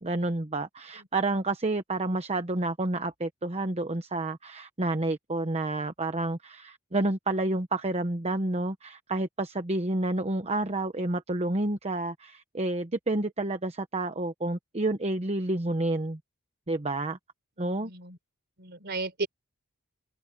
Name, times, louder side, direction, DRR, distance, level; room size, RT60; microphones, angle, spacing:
voice 1, 0.0-16.2 16.7-17.2 17.6-17.9, right 2 dB, 30° right, 1.0 m, -29 dB
voice 2, 17.6-18.2 18.6-19.3, right 3 dB, 50° right, 4.2 m, -35 dB
open air
head